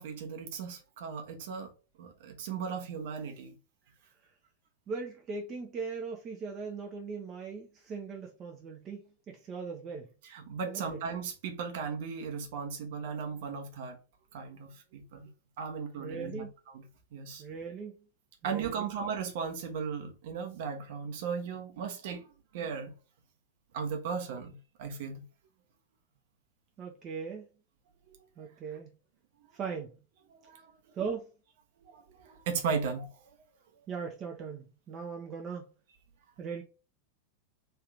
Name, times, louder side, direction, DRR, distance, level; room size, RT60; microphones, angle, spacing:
voice 1, 0.0-1.7 2.0-3.5 10.3-14.0 14.3-15.3 15.6-16.8 17.1-17.4 18.4-22.2 22.5-22.9 23.7-25.2 30.4-30.6 31.8-33.1, right 6 dB, 50° right, 0.9 m, -36 dB
voice 2, 4.9-10.1 10.6-11.0 16.0-16.5 17.4-17.9 18.4-18.9 26.8-27.5 28.4-28.9 29.5-30.0 31.0-31.3 33.9-35.7 36.4-36.6, right 5 dB, 30° right, 0.6 m, -39 dB
3.3 x 2.8 x 3.4 m
figure-of-eight pair, 90°, 0 cm